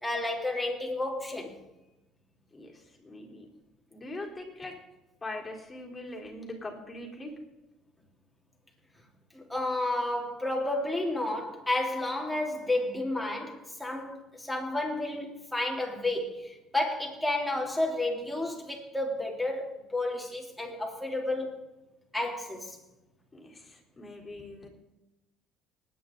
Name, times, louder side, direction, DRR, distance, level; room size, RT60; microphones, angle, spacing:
voice 1, 0.0-1.5 9.3-21.6 22.1-22.8, left 2 dB, ahead, -2 dB, 3.3 m, -31 dB
voice 2, 2.5-3.5 3.9-4.7 5.2-7.3 23.3-24.7, left 2 dB, 15° left, -1 dB, 3.8 m, -42 dB
20.0 x 9.5 x 3.9 m, 0.98 s
cardioid pair, 110°, 0 cm